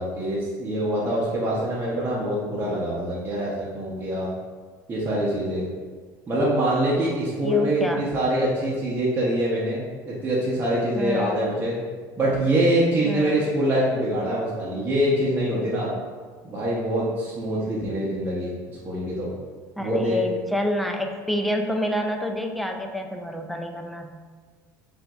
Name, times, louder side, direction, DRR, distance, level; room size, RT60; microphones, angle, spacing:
voice 1, 0.0-4.3 4.9-5.7 6.3-11.8 12.2-15.9 16.5-19.3 19.8-20.2, right 1 dB, 25° right, -7 dB, 0.8 m, -24 dB
voice 2, 7.4-8.0 10.9-11.4 13.0-13.4 19.8-24.1, equal, ahead, 4 dB, 0.3 m, -28 dB
5.5 x 2.6 x 2.4 m, 1.5 s
cardioid pair, 115°, 9 cm